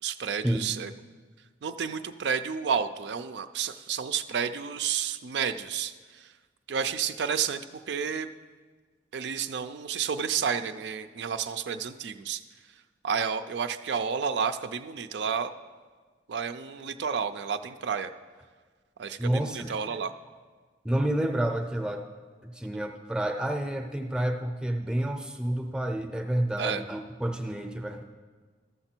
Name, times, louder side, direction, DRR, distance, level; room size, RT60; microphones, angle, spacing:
voice 1, 0.0-0.9 1.6-6.3 6.7-8.3 9.1-12.4 13.0-15.5 16.3-18.1 19.0-20.1 26.6-26.8, right 6 dB, 65° right, 10 dB, 0.4 m, -31 dB
voice 2, 19.2-19.7 20.8-22.0 22.4-28.0, right 1 dB, 5° right, 5 dB, 0.6 m, -29 dB
13.0 x 6.7 x 4.4 m, 1.5 s
head